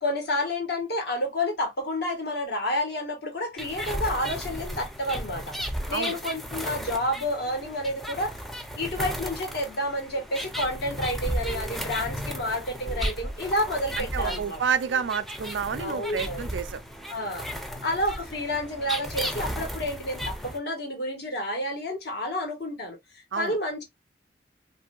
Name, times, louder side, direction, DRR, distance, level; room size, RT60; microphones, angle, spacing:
voice 1, 0.0-5.5 5.9-8.4 8.7-14.6 15.8-16.5 17.1-17.5 17.8-23.8, left 1 dB, 65° left, 1.4 m, -30 dB
sound 1, 3.6-20.6, equal, ahead, 0.5 m, -34 dB
voice 2, 14.0-16.8 23.3-23.6, right 6 dB, 75° right, 0.4 m, -29 dB
3.1 x 2.6 x 2.3 m
head